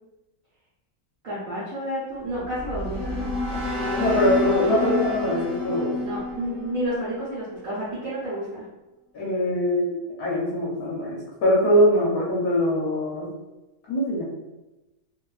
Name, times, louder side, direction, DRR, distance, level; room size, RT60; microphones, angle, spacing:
voice 1, 1.2-4.0 6.0-8.6, right 1 dB, 65° right, -9 dB, 0.8 m, -31 dB
sound 1, 2.3-7.5, left 2 dB, 15° left, 0.3 m, -29 dB
voice 2, 3.9-5.9 9.1-13.3 13.9-14.2, equal, 65° left, -7 dB, 1.0 m, -22 dB
3.1 x 2.1 x 2.3 m, 1.0 s
omnidirectional pair, 2.2 m